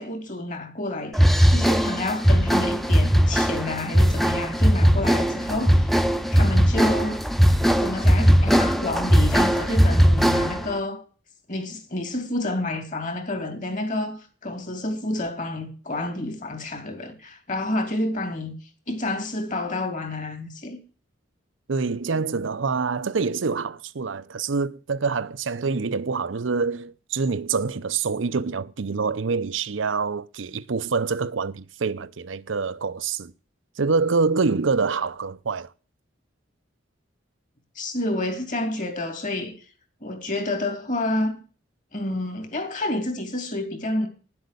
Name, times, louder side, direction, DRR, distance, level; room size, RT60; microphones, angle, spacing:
voice 1, 0.0-5.9 6.3-7.2 7.8-11.0 11.5-18.6 18.9-20.8 37.8-39.6 40.0-41.4 41.9-44.1, left 1 dB, 40° left, 2.7 m, -29 dB
sound 1, 1.1-10.7, equal, ahead, 0.7 m, -19 dB
voice 2, 21.7-33.3 33.8-35.7, right 4 dB, 80° right, 0.7 m, -26 dB
10.5 x 7.9 x 6.8 m
head